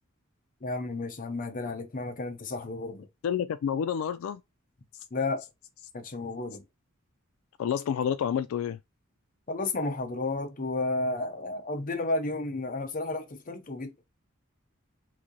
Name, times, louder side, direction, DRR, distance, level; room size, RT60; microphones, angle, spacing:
voice 1, 0.6-3.1 5.1-5.4 5.9-6.6 9.5-14.0, left 2 dB, 40° left, 0.7 m, -32 dB
voice 2, 3.2-4.4 7.6-8.8, left 8 dB, 80° left, 0.3 m, -29 dB
3.1 x 2.7 x 3.8 m
head